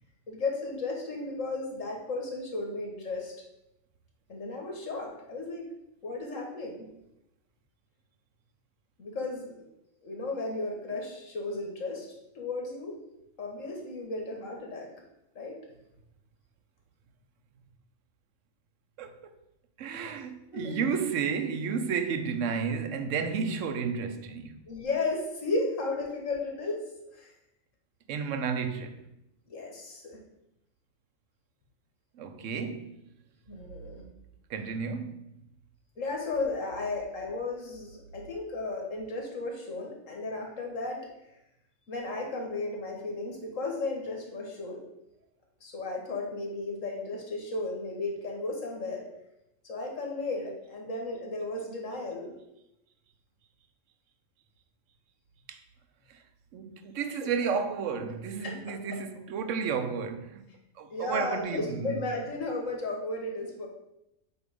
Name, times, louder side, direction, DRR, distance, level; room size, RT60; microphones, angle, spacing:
voice 1, 0.3-3.3 4.3-5.7 6.0-6.9 9.0-9.5 10.0-12.1 12.4-13.0 13.4-14.9 15.3-15.6 20.5-20.8 24.7-26.8 27.1-27.3 29.5-30.2 33.5-34.1 36.0-41.0 41.9-44.8 45.6-49.0 49.7-52.3 58.4-58.8 60.9-63.7, left 3 dB, 80° left, 1.8 m, -34 dB
voice 2, 19.8-24.6 28.1-29.1 32.1-33.0 34.5-35.4 55.5-55.6 56.1-56.2 56.5-60.5 60.8-62.0, right 6 dB, 75° right, 1.0 m, -32 dB
8.0 x 2.8 x 5.1 m
omnidirectional pair, 1.3 m